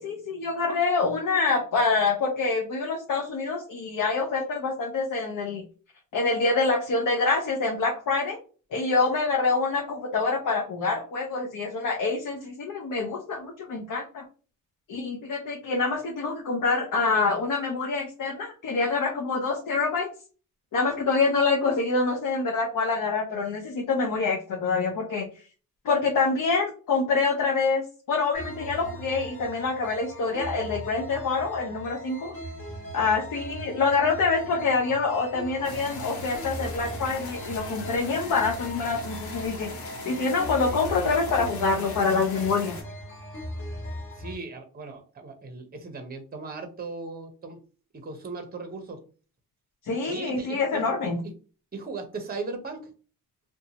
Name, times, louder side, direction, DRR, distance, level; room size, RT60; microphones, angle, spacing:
voice 1, 0.0-5.6 6.1-8.4 8.7-14.2 14.9-20.1 20.7-25.3 25.8-32.3 32.9-39.7 40.0-42.8 49.8-51.2, left 4 dB, 60° left, 1 dB, 0.7 m, -26 dB
sound 1, 28.3-44.3, equal, 40° left, 1.5 m, -39 dB
sound 2, 35.6-42.8, left 3 dB, 80° left, 0.9 m, -40 dB
voice 2, 44.2-47.6 47.9-49.0 50.1-50.8 51.7-52.9, right 3 dB, 25° right, 5 dB, 0.7 m, -37 dB
2.6 x 2.2 x 2.7 m, 0.38 s
cardioid pair, 75°, 36 cm